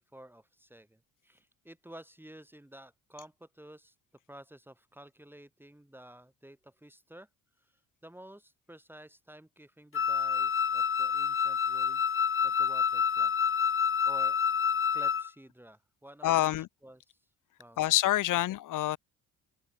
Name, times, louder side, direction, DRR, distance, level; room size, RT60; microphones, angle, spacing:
voice 1, 0.0-4.0 4.3-7.3 7.6-13.3 14.1-14.4 14.9-17.3 17.6-17.8 18.3-18.4, right 1 dB, 5° right, 5.7 m, -52 dB
Wind instrument woodwind instrument, 9.9-15.3, left 7 dB, 35° left, 1.3 m, -28 dB
voice 2, 16.2-16.7 17.8-19.0, left 14 dB, 60° left, 0.7 m, -26 dB
open air
supercardioid pair, 75°, 36 cm